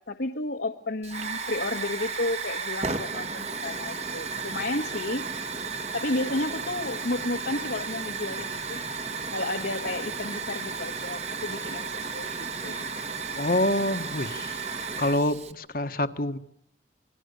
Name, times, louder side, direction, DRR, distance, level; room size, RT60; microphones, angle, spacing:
voice 1, 0.1-5.2 5.9-8.8 9.3-12.9, left 2 dB, 75° left, 1.6 m, -32 dB
Hiss / Fire, 1.0-15.5, right 4 dB, 35° right, 1.6 m, -34 dB
voice 2, 13.4-16.4, left 1 dB, 50° left, 1.5 m, -27 dB
27.5 x 22.5 x 6.9 m
head